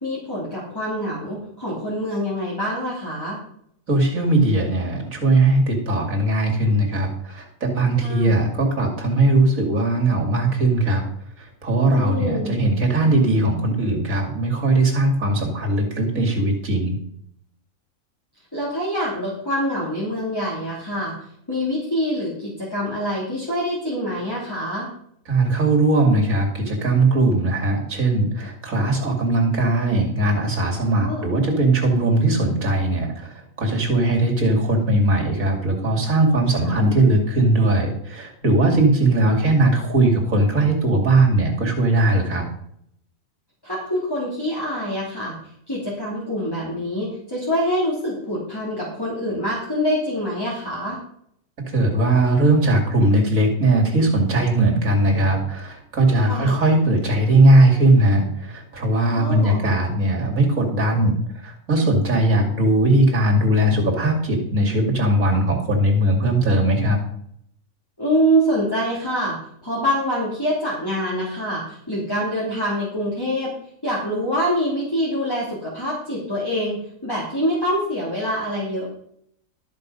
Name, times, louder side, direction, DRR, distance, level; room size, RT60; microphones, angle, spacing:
voice 1, 0.0-3.4 8.0-8.4 11.9-12.5 18.5-21.1 21.5-24.9 30.9-31.3 36.5-36.8 43.6-45.4 45.7-51.0 56.2-56.6 59.0-59.7 68.0-69.4 69.6-73.5 73.8-78.9, equal, 15° left, -7 dB, 3.3 m, -25 dB
voice 2, 3.9-11.0 11.6-17.0 25.3-33.3 33.6-42.5 51.7-61.2 61.4-67.0, right 2 dB, 70° right, 0 dB, 3.1 m, -19 dB
13.0 x 7.5 x 5.4 m, 0.69 s
omnidirectional pair, 1.5 m